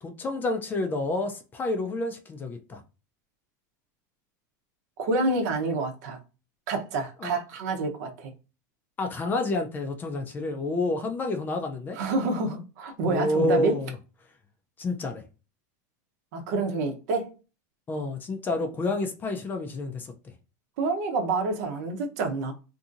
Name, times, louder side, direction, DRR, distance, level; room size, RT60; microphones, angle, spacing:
voice 1, 0.0-2.8 7.2-7.4 9.0-12.0 13.0-14.0 14.8-15.2 17.9-20.3, left 2 dB, 20° left, 0.4 m, -29 dB
voice 2, 5.0-6.2 6.7-8.3 12.0-13.7 16.3-17.4 20.8-22.5, right 3 dB, 65° right, 0.8 m, -28 dB
2.7 x 2.6 x 2.5 m
supercardioid pair, 140°, 10 cm